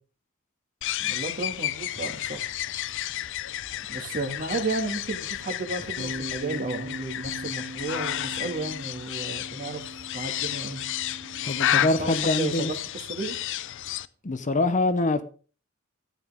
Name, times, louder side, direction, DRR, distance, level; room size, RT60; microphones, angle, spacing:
sound 1, 0.8-14.1, left 12 dB, 60° left, 0.5 m, -31 dB
voice 1, 1.0-2.5 3.9-10.8 11.8-13.4, right 3 dB, 40° right, 2.2 m, -33 dB
Bass guitar, 6.0-12.2, right 1 dB, 60° right, 2.5 m, -40 dB
voice 2, 11.4-12.7 14.2-15.2, left 2 dB, 35° left, 0.8 m, -24 dB
14.0 x 9.1 x 3.6 m
head